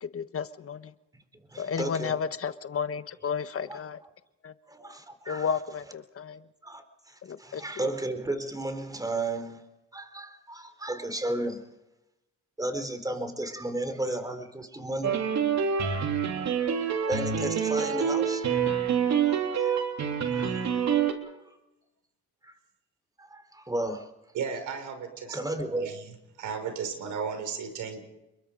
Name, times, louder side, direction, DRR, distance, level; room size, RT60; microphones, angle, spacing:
voice 1, 0.0-0.9 1.6-4.0 4.4-4.5 5.3-6.4 7.2-7.6, left 6 dB, 50° left, 11 dB, 1.3 m, -32 dB
voice 2, 1.5-2.1 3.7-3.8 4.7-5.5 6.6-11.6 12.6-15.2 15.6-15.7 17.1-18.5 19.2-19.9 20.3-20.9 21.2-21.6 22.4-22.5 23.2-24.1 25.3-25.9, right 2 dB, 10° right, 8 dB, 4.0 m, -34 dB
sound 1, 15.0-21.1, right 7 dB, 65° right, 3.5 m, -26 dB
voice 3, 24.3-25.4 25.7-26.1 26.4-28.0, right 6 dB, 80° right, 7 dB, 6.0 m, -34 dB
29.0 x 22.5 x 5.2 m, 0.94 s
cardioid pair, 90°, 30 cm